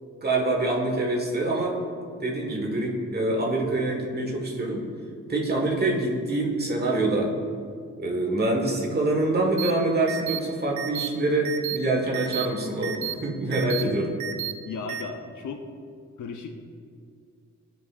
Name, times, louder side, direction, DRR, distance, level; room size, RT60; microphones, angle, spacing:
voice 1, 0.2-1.8 2.2-4.8 5.3-7.3 8.0-14.1, right 2 dB, 35° right, 0 dB, 1.5 m, -25 dB
sound 1, 9.6-9.7 10.1-10.4 10.8-11.1 11.4-11.8 12.1-12.5 12.8-13.1 13.5-13.8 14.2-14.5 14.9-15.0, right 12 dB, 85° right, 0.6 m, -31 dB
voice 2, 14.6-15.6 16.2-16.6, left 5 dB, 85° left, 4 dB, 0.7 m, -35 dB
14.5 x 5.6 x 2.5 m, 2.3 s
wide cardioid pair, 110°, 29 cm